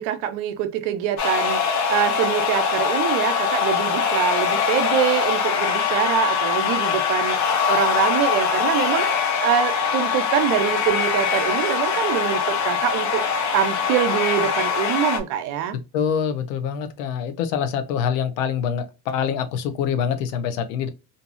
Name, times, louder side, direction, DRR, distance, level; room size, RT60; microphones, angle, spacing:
voice 1, 0.0-13.2 13.5-15.8, right 10 dB, 70° right, 0.6 m, -24 dB
sound 1, 1.2-15.2, left 6 dB, 40° left, 0.7 m, -22 dB
voice 2, 15.9-20.9, left 7 dB, 85° left, 0.7 m, -25 dB
2.7 x 2.5 x 2.4 m
supercardioid pair, 90°, 45 cm